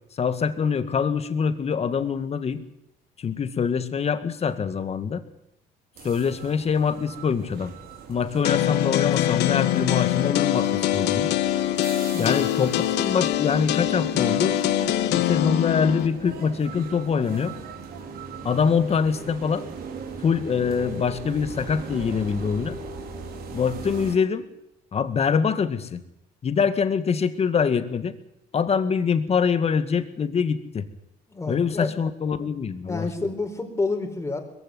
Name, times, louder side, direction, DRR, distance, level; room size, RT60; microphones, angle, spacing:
voice 1, 0.2-2.6 3.2-5.2 6.0-7.7 8.1-11.4 12.2-14.6 15.1-17.5 18.4-19.7 20.2-22.8 23.5-24.5 24.9-26.0 26.4-28.1 28.5-30.9 31.5-33.1, left 6 dB, 40° left, 11 dB, 2.0 m, -24 dB
sound 1, 6.0-24.2, right 5 dB, 65° right, 3.9 m, -39 dB
sound 2, 8.4-16.1, left 13 dB, 80° left, 1.4 m, -23 dB
voice 2, 12.1-12.5 31.3-31.9 32.9-34.4, left 3 dB, 15° left, 4 dB, 4.4 m, -29 dB
21.5 x 15.5 x 9.8 m, 0.82 s
cardioid pair, 110°, 17 cm